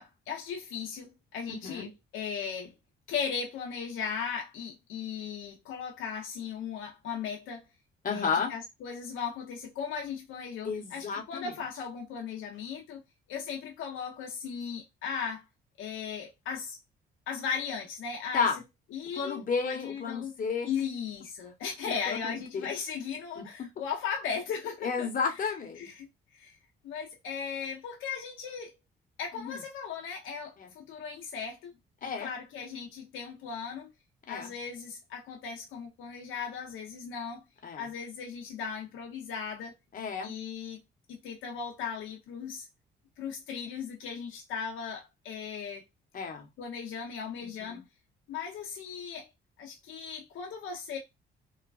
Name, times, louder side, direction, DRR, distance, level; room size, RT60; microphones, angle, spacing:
voice 1, 0.0-2.7 3.1-7.6 8.1-13.0 13.3-15.4 15.8-16.8 17.3-18.5 18.9-20.3 20.6-25.1 25.4-25.5 25.8-26.6 26.8-28.7 29.2-31.7 32.0-33.9 34.3-37.4 37.8-39.7 40.2-40.8 41.1-42.7 43.2-45.8 46.6-47.8 48.3-49.3 49.6-51.0, left 6 dB, 85° left, 0.7 m, -37 dB
voice 2, 1.5-1.9 8.0-8.5 10.6-11.5 18.3-18.6 19.2-20.7 22.1-22.7 23.4-23.5 24.8-25.9 29.4-29.6 30.6-30.7 32.0-32.3 34.3-34.5 37.6-37.9 39.9-40.3 46.1-46.5 47.4-47.8, left 5 dB, 45° left, 1.0 m, -32 dB
3.1 x 2.2 x 2.3 m
cardioid pair, 90°, 20 cm